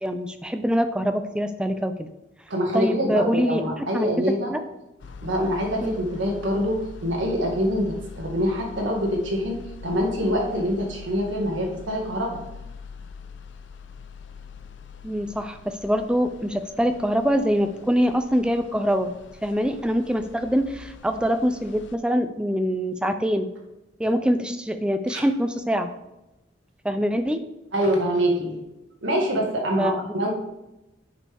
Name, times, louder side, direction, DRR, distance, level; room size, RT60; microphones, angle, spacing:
voice 1, 0.0-2.1 2.7-3.6 3.9-4.1 4.5-4.6 5.8-6.0 15.0-19.1 19.4-23.5 24.0-25.9 26.8-27.4 29.8-29.9, equal, 5° right, 8 dB, 0.4 m, -24 dB
voice 2, 2.5-4.5 5.2-12.4 25.1-25.2 27.7-28.6 29.0-30.3, equal, 75° right, -1 dB, 1.7 m, -25 dB
sound 1, 5.0-22.0, left 4 dB, 70° left, 0.5 m, -43 dB
8.5 x 5.3 x 3.5 m, 0.96 s
head